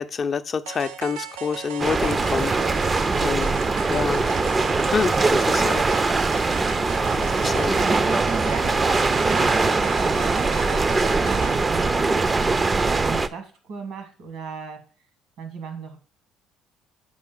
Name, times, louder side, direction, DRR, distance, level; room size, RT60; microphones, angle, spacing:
voice 1, 0.0-2.5 3.2-3.5 3.9-4.3 4.9-5.9 7.1-7.8, left 6 dB, 45° left, 10 dB, 0.4 m, -27 dB
sound 1, 0.7-11.7, right 8 dB, 90° right, 0.4 m, -36 dB
sound 2, 1.8-13.3, right 3 dB, 30° right, 0.4 m, -22 dB
voice 2, 3.1-3.4 7.2-11.9 12.3-14.8 15.4-16.0, right 4 dB, 75° right, 7 dB, 1.5 m, -36 dB
6.2 x 4.2 x 3.9 m, 0.38 s
supercardioid pair, 70°, 0 cm